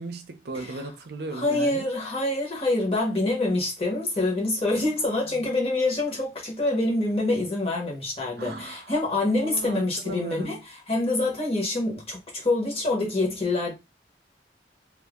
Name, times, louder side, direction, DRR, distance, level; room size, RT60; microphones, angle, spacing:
voice 1, 0.0-1.9 5.1-5.4 8.4-8.9 9.3-10.6, right 2 dB, 65° right, 0.6 m, -37 dB
voice 2, 1.3-13.7, left 2 dB, 35° left, 1.1 m, -26 dB
2.7 x 2.5 x 3.6 m
head